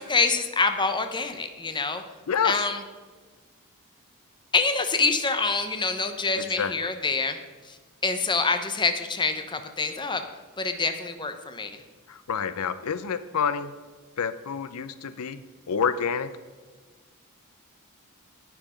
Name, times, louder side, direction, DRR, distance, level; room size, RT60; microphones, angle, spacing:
voice 1, 0.0-2.0 2.4-2.8 4.5-7.4 7.7-7.8 8.0-10.2 10.6-11.7, left 4 dB, 20° left, 8 dB, 0.9 m, -26 dB
voice 2, 2.3-2.7 6.4-6.9 12.1-13.7 14.2-15.4 15.7-16.3, left 6 dB, 75° left, 13 dB, 0.5 m, -28 dB
9.9 x 9.3 x 5.1 m, 1.4 s
head